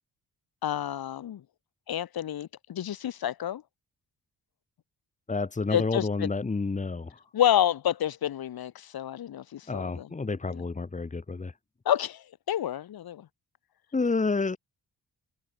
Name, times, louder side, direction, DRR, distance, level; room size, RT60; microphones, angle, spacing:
voice 1, 0.6-1.4 1.9-3.6 5.7-6.3 7.3-10.1 10.5-10.6 11.9-13.3, left 11 dB, 85° left, 7.1 m, -29 dB
voice 2, 5.3-7.2 9.7-11.5 13.9-14.6, left 3 dB, 20° left, 3.2 m, -29 dB
wide cardioid pair, 155°, 35 cm